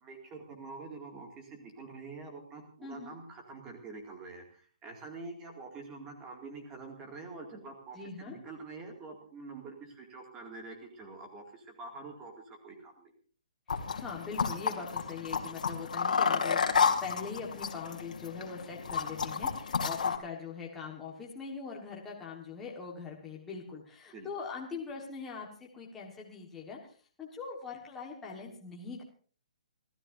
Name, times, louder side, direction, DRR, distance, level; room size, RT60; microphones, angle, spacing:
voice 1, 0.0-13.1 24.1-24.3, right 3 dB, 10° right, 2 dB, 2.2 m, -46 dB
voice 2, 2.8-3.2 7.9-8.4 14.0-26.8 27.2-29.0, left 5 dB, 5° left, -2 dB, 1.4 m, -42 dB
sound 1, 13.7-20.2, left 6 dB, 75° left, 2.4 m, -31 dB
29.0 x 13.5 x 2.6 m, 0.42 s
hypercardioid pair, 180°, 4 cm